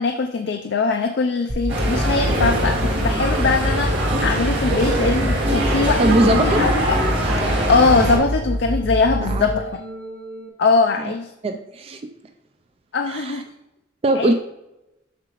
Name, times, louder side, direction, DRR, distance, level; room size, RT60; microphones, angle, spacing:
voice 1, 0.0-7.0 7.4-9.8 10.6-11.3 12.9-13.4 14.2-14.3, left 4 dB, 70° left, 5 dB, 0.4 m, -21 dB
sound 1, 1.5-10.5, equal, 60° right, 0.9 m, -26 dB
sound 2, 1.7-8.2, right 1 dB, 80° right, 1.9 m, -22 dB
voice 2, 6.0-6.6 9.2-9.5 11.0-11.1 11.4-12.0 13.1-13.4 14.0-14.3, right 2 dB, 35° right, 5 dB, 0.4 m, -21 dB
7.4 x 5.8 x 3.0 m, 0.92 s
head